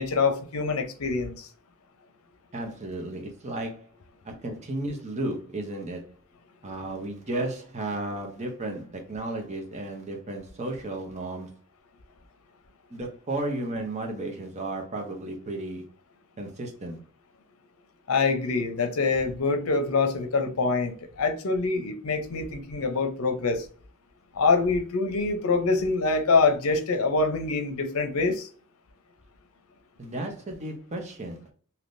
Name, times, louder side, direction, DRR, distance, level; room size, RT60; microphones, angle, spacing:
voice 1, 0.0-1.5 18.1-23.6 24.3-28.5, left 4 dB, 70° left, 0.6 m, -25 dB
voice 2, 2.5-3.9 4.2-6.1 6.6-11.6 12.9-15.8 16.4-17.0 30.0-31.5, right 2 dB, 30° right, 0.8 m, -34 dB
3.5 x 2.8 x 2.6 m
head